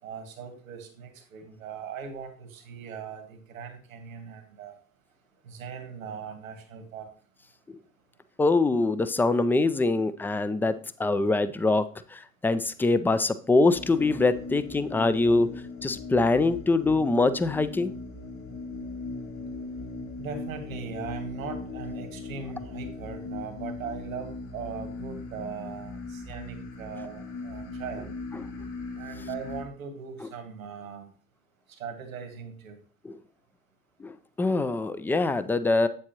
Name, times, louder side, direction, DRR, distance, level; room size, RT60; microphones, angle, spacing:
voice 1, 0.0-4.8 5.4-7.1 20.2-28.2 28.9-31.1 31.7-32.8, right 6 dB, 80° right, 6 dB, 1.7 m, -40 dB
voice 2, 8.4-10.7 11.0-11.8 12.1-15.5 15.8-17.9 28.4-28.5 30.2-30.3 33.0-33.2 34.0-35.9, left 3 dB, 5° left, 13 dB, 0.3 m, -24 dB
sound 1, 13.7-29.6, left 3 dB, 80° left, 4.3 m, -38 dB
8.3 x 7.5 x 3.0 m, 0.42 s
figure-of-eight pair, 70°, 40 cm